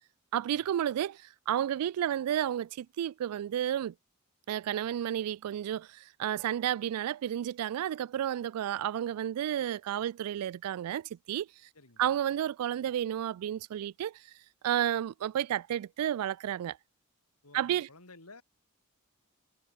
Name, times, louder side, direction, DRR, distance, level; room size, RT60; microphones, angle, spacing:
voice 1, 0.3-3.9 4.5-11.5 12.0-14.3 14.6-16.8 17.5-17.9, right 10 dB, 90° right, 0.3 m, -31 dB
voice 2, 11.7-12.2 17.4-18.4, left 3 dB, 90° left, 4.8 m, -54 dB
head